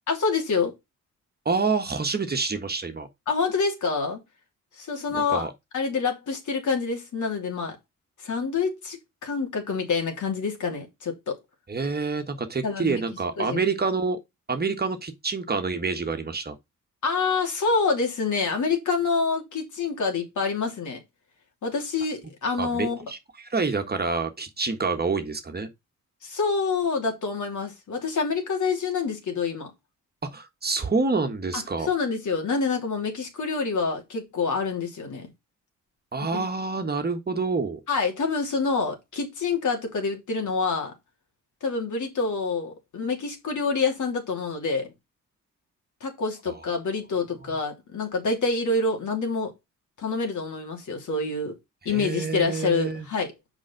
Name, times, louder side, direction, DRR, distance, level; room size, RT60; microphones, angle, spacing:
voice 1, 0.1-0.7 3.3-4.2 4.8-5.5 5.7-7.8 8.2-9.0 9.2-11.4 12.6-13.0 13.4-13.6 17.0-21.0 21.6-23.1 26.2-29.7 31.5-35.3 36.3-36.5 37.9-40.9 41.6-44.9 46.0-49.5 50.0-51.5 51.8-53.3, left 4 dB, 65° left, 3.0 m, -27 dB
voice 2, 1.4-3.1 5.1-5.5 11.7-14.2 14.5-16.6 22.6-25.7 30.2-31.9 36.1-37.8 46.5-46.6 47.4-47.5 51.9-53.1, right 4 dB, 30° right, 1.4 m, -27 dB
6.3 x 5.0 x 4.6 m
cardioid pair, 75°, 32 cm